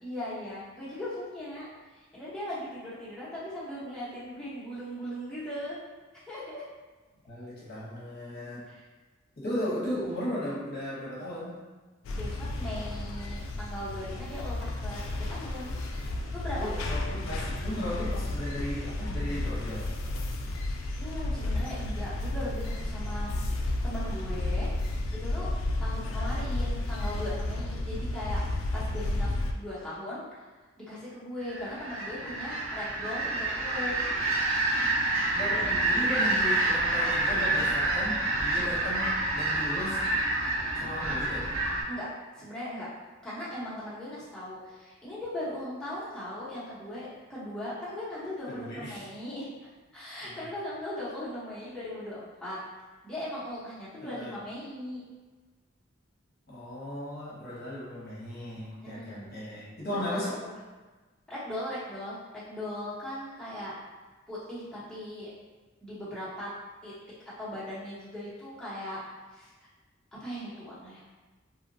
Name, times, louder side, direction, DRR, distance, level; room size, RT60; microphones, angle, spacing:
voice 1, 0.0-1.6 1.9-5.8 6.1-6.6 8.7-8.8 12.1-15.7 16.3-16.7 21.0-23.3 23.8-24.7 25.1-25.5 25.8-29.3 29.5-30.4 30.9-34.0 41.9-42.1 42.4-42.9 43.2-49.5 49.9-52.6 53.0-55.0 58.8-59.4 60.1-60.4 61.3-63.7 64.3-65.3 65.8-66.5 66.8-66.9 67.4-69.0 69.3-69.5 70.2-71.0, left 1 dB, 5° left, -11 dB, 0.8 m, -38 dB
voice 2, 7.3-8.6 9.4-11.6 16.0-16.1 16.5-19.9 35.3-40.0 40.7-41.5 48.5-49.1 50.2-50.5 54.0-54.3 56.5-60.3, left 1 dB, 50° left, -8 dB, 0.8 m, -36 dB
sound 1, 12.0-29.5, left 2 dB, 80° left, 0.3 m, -32 dB
sound 2, 31.4-41.8, right 2 dB, 85° right, 0.6 m, -28 dB
2.7 x 2.1 x 2.6 m, 1.3 s
head